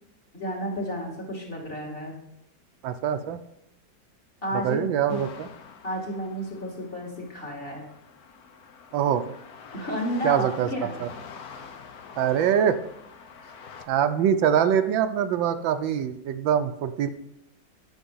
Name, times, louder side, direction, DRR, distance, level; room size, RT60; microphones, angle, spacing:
voice 1, 0.3-2.2 4.4-4.8 5.1-5.2 5.8-7.9 9.7-11.0, equal, 30° left, -1 dB, 2.3 m, -32 dB
voice 2, 2.8-3.4 4.6-5.5 8.9-9.2 10.2-10.7 11.0-11.1 12.2-12.8 13.9-17.1, right 9 dB, 80° right, 9 dB, 1.4 m, -23 dB
sound 1, 5.1-13.9, left 6 dB, 60° left, 1.3 m, -46 dB
9.5 x 6.5 x 5.5 m, 0.82 s
omnidirectional pair, 2.0 m